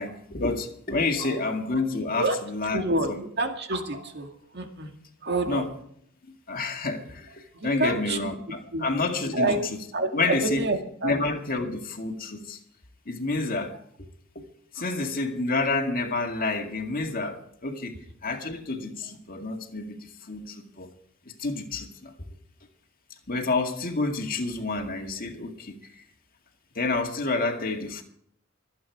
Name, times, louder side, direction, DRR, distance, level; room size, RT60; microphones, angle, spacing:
voice 1, 0.0-3.2 5.5-5.7 6.5-9.5 10.1-10.6 11.0-12.6 13.1-13.8 14.4-14.5 14.7-20.9 21.4-22.1 23.3-26.0 26.8-28.0, left 3 dB, 45° left, 2.1 m, -29 dB
voice 2, 1.2-1.5 2.2-2.4 2.7-4.9 5.2-5.7 7.5-8.2 8.7-8.9 9.3-9.6 9.9-11.2 14.8-14.9, right 2 dB, 55° right, 2.1 m, -28 dB
25.0 x 8.8 x 4.7 m
head